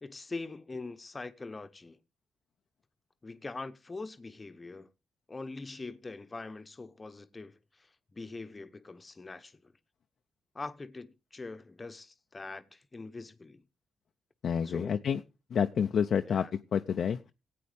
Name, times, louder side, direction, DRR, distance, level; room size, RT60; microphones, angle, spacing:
voice 1, 0.0-2.0 3.2-4.9 5.3-9.7 10.5-13.6 14.6-15.0 16.2-16.5, left 3 dB, 30° left, 0.9 m, -43 dB
voice 2, 14.4-15.2 15.5-16.5 16.7-17.3, left 7 dB, 65° left, 0.5 m, -28 dB
16.5 x 8.5 x 3.4 m
supercardioid pair, 50°, 0 cm